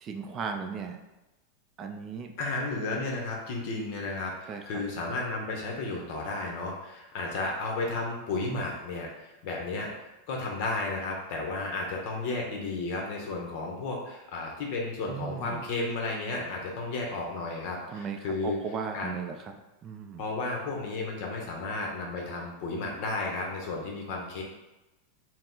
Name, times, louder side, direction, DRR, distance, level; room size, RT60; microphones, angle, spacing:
voice 1, 0.0-1.0 1.8-2.3 4.5-4.6 15.1-15.6 17.9-19.5 19.8-20.2, right 6 dB, 30° right, 4 dB, 0.3 m, -36 dB
voice 2, 2.4-18.6 18.9-19.1 20.2-24.4, left 3 dB, 55° left, -1 dB, 0.8 m, -33 dB
4.6 x 2.0 x 3.8 m, 1.0 s
supercardioid pair, 145°, 0 cm